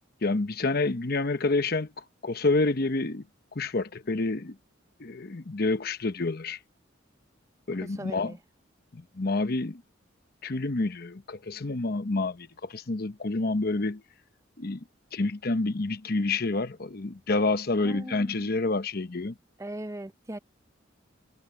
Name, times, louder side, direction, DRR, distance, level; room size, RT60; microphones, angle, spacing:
voice 1, 0.2-3.2 3.5-4.6 5.0-6.6 7.7-8.4 8.9-9.8 10.4-14.0 14.6-14.8 15.1-19.3, left 3 dB, 50° left, 0.9 m, -28 dB
voice 2, 7.8-8.4 17.8-18.5 19.6-20.4, right 1 dB, 15° right, 0.6 m, -39 dB
head